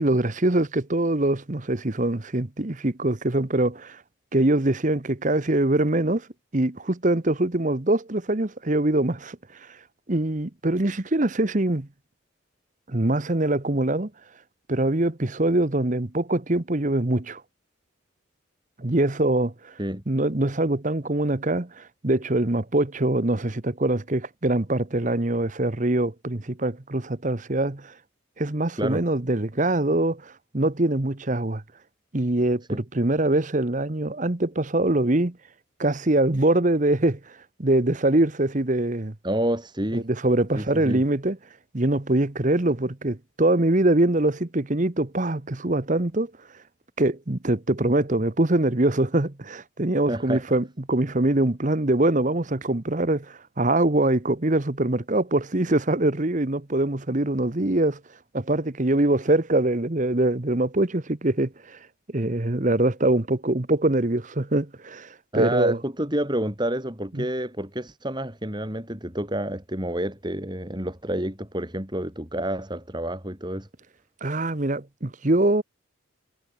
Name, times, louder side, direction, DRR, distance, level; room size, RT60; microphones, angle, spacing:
voice 1, 0.0-4.0 4.3-6.3 6.5-9.4 10.1-11.9 12.9-14.1 14.7-17.4 18.8-19.7 20.1-27.9 28.4-31.6 32.1-35.4 35.8-37.2 37.6-39.1 39.9-41.4 41.7-46.3 47.0-58.0 58.3-61.8 62.1-65.8 67.2-67.3 74.2-75.6, right 1 dB, 40° right, 1.1 m, -23 dB
voice 2, 39.2-40.1 40.6-41.0 50.1-50.4 65.3-73.7, right 1 dB, 20° right, 3.7 m, -29 dB
head